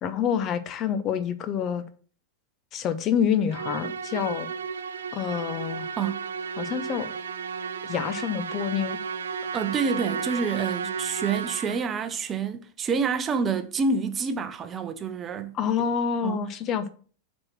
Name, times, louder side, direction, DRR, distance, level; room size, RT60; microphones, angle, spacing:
voice 1, 0.0-1.8 2.7-4.5 5.1-5.9 6.6-7.1 7.8-9.0 15.5-16.9, left 8 dB, 35° left, 0.7 m, -27 dB
Musical instrument, 3.5-12.0, right 6 dB, 65° right, 0.5 m, -33 dB
voice 2, 9.5-15.6 16.2-16.5, right 5 dB, 25° right, 0.7 m, -28 dB
7.7 x 4.4 x 5.8 m
figure-of-eight pair, 90°, 0 cm